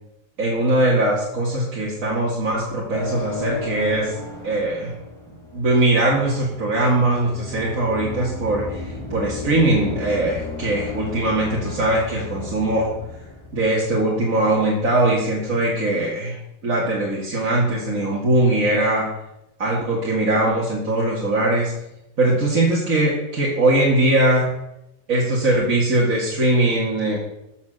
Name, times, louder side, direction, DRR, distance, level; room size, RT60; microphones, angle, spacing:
voice 1, 0.4-4.2 4.4-4.9 5.5-12.9 13.5-16.4 16.6-19.1 19.6-21.7 22.2-24.5 25.1-27.2, right 1 dB, 70° right, -5 dB, 2.8 m, -21 dB
sound 1, 2.9-14.3, left 2 dB, ahead, 3.8 m, -34 dB
14.0 x 7.1 x 6.7 m, 0.87 s
omnidirectional pair, 1.5 m